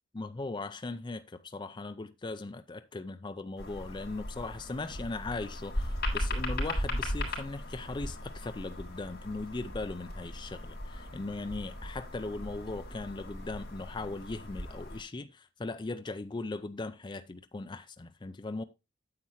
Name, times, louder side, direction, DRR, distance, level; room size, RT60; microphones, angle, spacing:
voice 1, 0.1-18.6, left 3 dB, 25° left, 0.4 m, -39 dB
sound 1, 3.6-15.0, left 1 dB, 55° left, 3.5 m, -37 dB
9.4 x 7.5 x 3.0 m
head